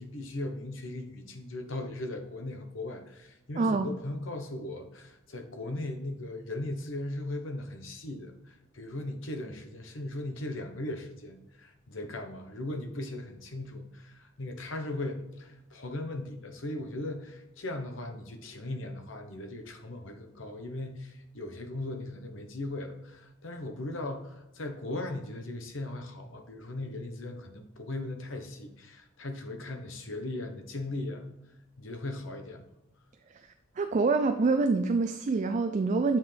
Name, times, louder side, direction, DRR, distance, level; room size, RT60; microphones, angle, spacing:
voice 1, 0.0-31.3 31.8-32.7, left 2 dB, 65° left, 5 dB, 1.0 m, -38 dB
voice 2, 3.6-3.9 33.8-36.2, right 3 dB, 35° right, 8 dB, 0.4 m, -26 dB
7.2 x 5.8 x 3.3 m, 0.95 s
head